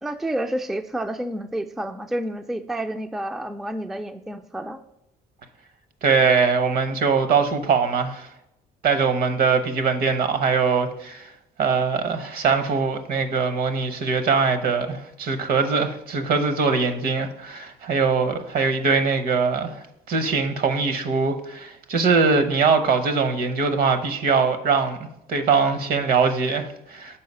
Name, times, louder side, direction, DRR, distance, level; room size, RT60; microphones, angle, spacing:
voice 1, 0.0-4.8, right 1 dB, ahead, 0.3 m, -29 dB
voice 2, 6.0-8.3 8.8-11.3 11.6-27.2, right 5 dB, 60° right, 0.9 m, -22 dB
5.7 x 4.6 x 5.4 m
cardioid pair, 110°, 17 cm